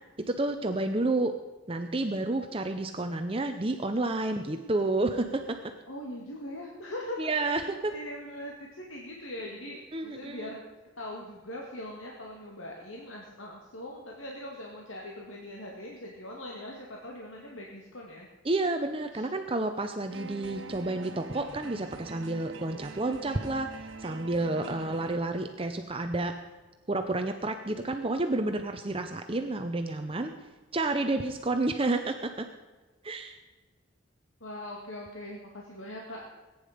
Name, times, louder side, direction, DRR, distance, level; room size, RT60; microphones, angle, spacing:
voice 1, 0.3-1.3 1.7-5.6 7.2-7.9 9.9-10.5 18.4-23.7 24.0-26.3 26.9-30.3 30.7-32.5 33.0-33.4, right 2 dB, 30° right, 6 dB, 0.8 m, -30 dB
voice 2, 5.9-7.2 7.5-10.6 11.0-18.3 19.1-19.2 34.4-36.2, left 1 dB, 85° left, -1 dB, 2.2 m, -41 dB
sound 1, 20.1-25.2, right 3 dB, 75° right, 1.3 m, -44 dB
21.0 x 9.6 x 5.2 m, 1.3 s
head